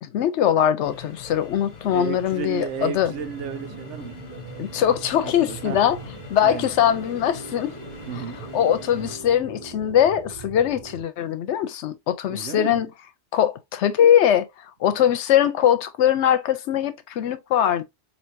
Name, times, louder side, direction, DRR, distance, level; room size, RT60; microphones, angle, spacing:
voice 1, 0.0-3.1 4.6-6.0 6.3-7.7 8.1-8.2 8.5-12.9 13.3-14.5 14.8-17.8, left 10 dB, 75° left, 0.9 m, -21 dB
sound 1, 0.8-9.2, left 6 dB, 40° left, 1.0 m, -42 dB
voice 2, 1.9-4.1 5.2-5.8 6.4-6.7 8.1-8.4 12.3-12.8, right 7 dB, 85° right, 1.0 m, -33 dB
sound 2, 3.0-11.0, right 7 dB, 40° right, 0.5 m, -41 dB
4.5 x 2.8 x 2.5 m
omnidirectional pair, 1.2 m